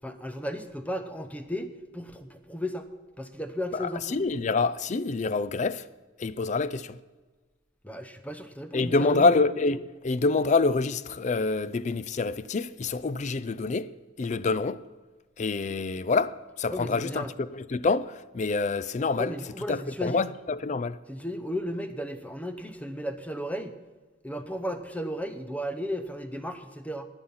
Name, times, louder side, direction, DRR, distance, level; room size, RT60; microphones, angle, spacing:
voice 1, 0.0-2.9 3.2-4.2 7.8-9.3 16.7-17.3 19.2-20.3 21.1-23.8 24.2-27.1, equal, 5° left, 0.7 m, -35 dB
voice 2, 3.8-5.8 6.2-7.0 8.7-13.9 14.2-14.8 15.4-19.3 19.7-21.0, left 3 dB, 35° left, 0.4 m, -26 dB
20.0 x 7.2 x 5.6 m
head